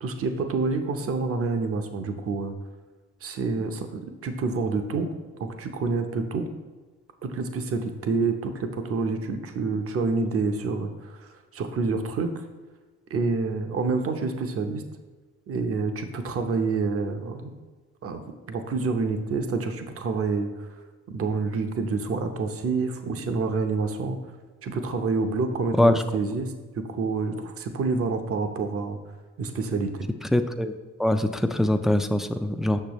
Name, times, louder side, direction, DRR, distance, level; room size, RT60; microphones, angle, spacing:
voice 1, 0.0-2.6 3.2-5.1 5.4-6.5 7.2-12.3 13.1-14.8 15.5-17.6 18.0-18.2 18.5-20.7 21.1-24.2 24.6-29.0 29.4-30.1, right 4 dB, 50° right, 6 dB, 0.8 m, -28 dB
voice 2, 30.3-30.7 31.0-32.8, left 1 dB, ahead, 7 dB, 0.3 m, -22 dB
6.7 x 6.2 x 3.0 m, 1.3 s
cardioid pair, 90°, 30 cm